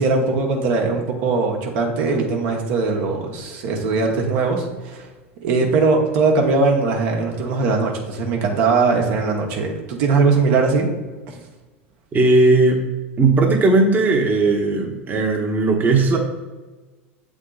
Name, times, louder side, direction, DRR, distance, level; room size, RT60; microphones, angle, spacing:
voice 1, 0.0-5.1 5.4-10.9 11.3-11.4, right 4 dB, 65° right, 1 dB, 1.2 m, -20 dB
voice 2, 12.1-12.8 13.2-16.2, right 3 dB, 25° right, 0 dB, 1.1 m, -17 dB
7.4 x 3.6 x 3.9 m, 1.2 s
hypercardioid pair, 90°, 7 cm